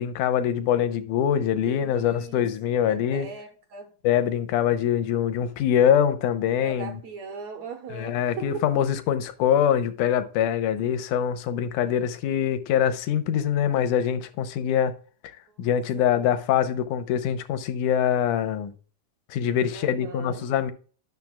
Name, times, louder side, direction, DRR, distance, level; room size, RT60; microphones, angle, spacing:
voice 1, 0.0-3.3 4.0-7.0 7.9-14.9 15.6-18.7 19.3-20.7, left 9 dB, 85° left, 2.2 m, -24 dB
voice 2, 1.6-3.9 6.6-8.7 10.8-11.1 11.8-12.1 15.5-15.6 15.9-16.3 19.7-20.5, right 5 dB, 70° right, 1.9 m, -40 dB
12.0 x 6.5 x 2.3 m
omnidirectional pair, 3.6 m